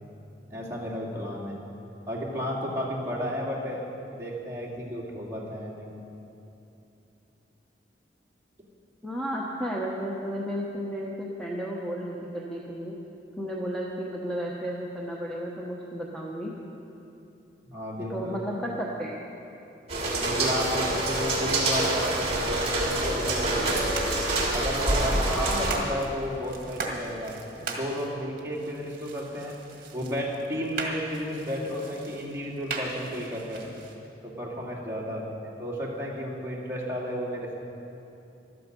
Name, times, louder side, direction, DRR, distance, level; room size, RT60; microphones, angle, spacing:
voice 1, 0.5-1.6 2.1-3.8 4.1-5.9 17.7-18.4 20.1-23.7 24.5-29.6 29.9-33.7 34.2-37.6, equal, 15° right, -6 dB, 2.7 m, -33 dB
voice 2, 9.0-12.9 13.4-16.5 18.1-19.2 25.1-25.8, equal, 5° left, -4 dB, 1.0 m, -33 dB
sound 1, 19.9-25.7, right 1 dB, 35° right, 2.7 m, -26 dB
sound 2, 23.2-34.0, right 3 dB, 55° right, 1.9 m, -39 dB
14.5 x 12.5 x 5.3 m, 2.8 s
head